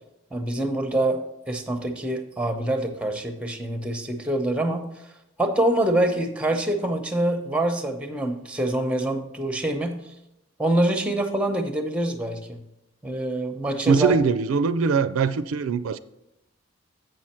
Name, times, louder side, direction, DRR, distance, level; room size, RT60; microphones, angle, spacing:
voice 1, 0.3-1.2 1.5-4.9 5.4-10.0 10.6-12.6 13.0-14.2, right 1 dB, 5° right, 0.7 m, -25 dB
voice 2, 13.9-16.0, right 5 dB, 85° right, 0.4 m, -22 dB
7.9 x 6.2 x 4.3 m
head